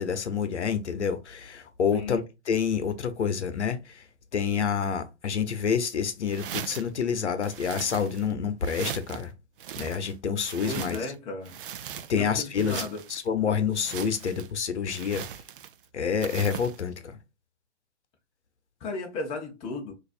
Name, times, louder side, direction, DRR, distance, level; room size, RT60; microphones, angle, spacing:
voice 1, 0.0-4.0 4.3-9.3 9.8-11.0 12.1-12.8 13.1-15.2 15.9-17.2, left 7 dB, 85° left, 0.8 m, -28 dB
voice 2, 1.9-2.2 10.6-11.6 12.1-13.0 18.8-19.9, left 3 dB, 15° left, 0.7 m, -35 dB
sound 1, 6.3-7.0 7.4-8.3 8.6-9.2 9.6-11.1 11.4-12.3 12.5-13.2 13.7-14.5 14.9-15.8 16.2-16.8, right 9 dB, 50° right, 0.5 m, -39 dB
4.0 x 2.6 x 2.4 m
hypercardioid pair, 135°, 34 cm